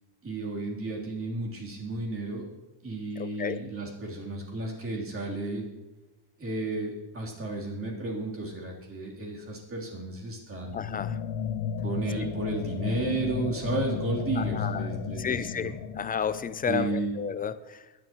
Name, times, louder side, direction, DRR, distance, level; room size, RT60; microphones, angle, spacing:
voice 1, 0.2-2.4 2.8-5.6 6.4-10.8 11.8-15.8 16.7-17.1, right 3 dB, 30° right, -2 dB, 3.4 m, -33 dB
voice 2, 3.2-3.6 10.7-11.2 14.4-14.9 15.2-17.8, left 7 dB, 20° left, 14 dB, 0.4 m, -32 dB
sound 1, 10.7-17.4, left 8 dB, 65° left, 0.8 m, -34 dB
21.5 x 11.0 x 3.0 m, 1.1 s
cardioid pair, 125°, 43 cm